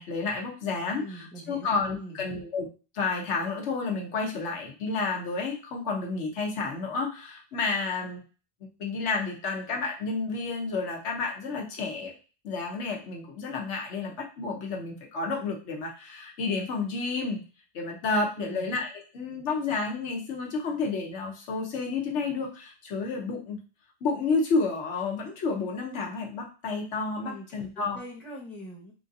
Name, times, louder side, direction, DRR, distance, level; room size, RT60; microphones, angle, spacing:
voice 1, 0.0-2.7 2.9-8.2 8.8-12.1 12.4-17.4 17.7-23.6 24.0-28.0, left 4 dB, 75° left, 0 dB, 1.1 m, -30 dB
voice 2, 1.0-2.2 18.4-18.7 27.2-28.9, equal, ahead, -4 dB, 0.7 m, -43 dB
3.8 x 2.5 x 2.6 m, 0.34 s
omnidirectional pair, 1.2 m